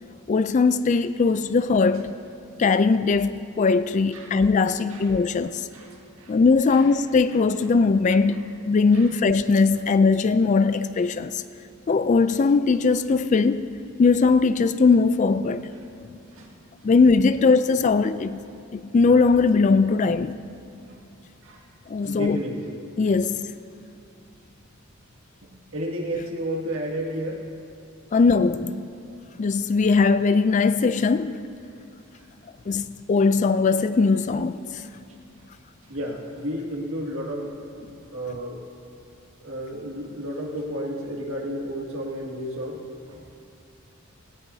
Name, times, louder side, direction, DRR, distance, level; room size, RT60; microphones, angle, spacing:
voice 1, 0.3-2.2 2.6-5.6 6.3-11.4 11.9-13.7 14.0-15.7 16.8-18.4 18.7-20.4 21.9-22.4 23.0-23.5 28.1-28.9 29.4-31.4 32.7-34.6, left 4 dB, 35° left, 0.3 m, -20 dB
voice 2, 5.4-6.4 6.7-6.9 7.3-7.4 8.9-9.1 16.3-16.5 21.4-21.6 22.0-22.8 25.4-27.4 32.2-32.3 35.9-37.5 38.1-38.6 39.4-42.8 43.1-43.3, equal, 75° right, 2.1 m, -32 dB
17.5 x 17.0 x 2.7 m
head